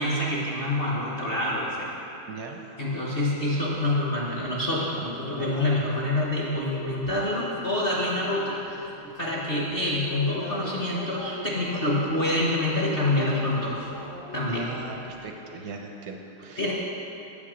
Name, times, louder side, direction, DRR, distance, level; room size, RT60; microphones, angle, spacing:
voice 1, 0.0-1.9 2.8-8.6 9.2-13.8 14.3-14.7 16.6-16.7, left 1 dB, 40° left, -5 dB, 0.8 m, -26 dB
voice 2, 2.3-2.6 14.5-16.7, right 4 dB, 70° right, 2 dB, 1.0 m, -39 dB
sound 1, 3.5-9.6 9.9-15.3, left 2 dB, 65° left, 1.7 m, -41 dB
8.5 x 5.8 x 6.1 m, 2.9 s
omnidirectional pair, 2.3 m